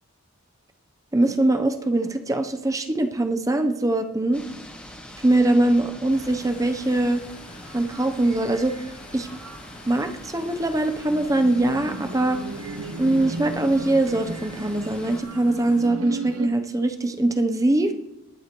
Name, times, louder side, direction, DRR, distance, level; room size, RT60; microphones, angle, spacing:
voice 1, 1.1-4.4 5.2-7.2 7.7-8.8 9.1-9.3 9.9-12.4 13.0-17.9, right 2 dB, 15° right, 6 dB, 0.6 m, -22 dB
sound 1, 4.3-15.2, left 1 dB, 5° left, 1.9 m, -43 dB
sound 2, 6.1-15.9, left 2 dB, 50° left, 3.5 m, -48 dB
sound 3, 7.5-9.0 9.2-10.2 11.1-16.5, right 2 dB, 85° right, 0.8 m, -37 dB
19.5 x 10.5 x 3.0 m, 0.90 s
head